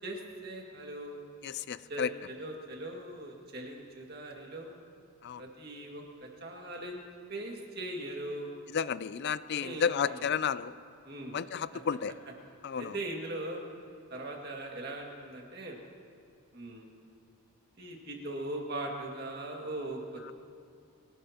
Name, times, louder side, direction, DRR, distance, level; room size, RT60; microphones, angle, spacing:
voice 1, 0.0-1.2 1.9-4.8 5.4-8.5 9.5-10.3 11.0-11.4 11.7-11.8 12.8-13.6 14.1-15.8 16.5-16.9 17.8-20.3, right 1 dB, 45° right, 0 dB, 2.1 m, -40 dB
voice 2, 1.4-2.1 5.2-5.4 8.7-10.7 11.3-12.1 12.6-12.9, left 7 dB, 50° left, 16 dB, 0.3 m, -32 dB
23.5 x 17.5 x 2.9 m, 2.4 s
head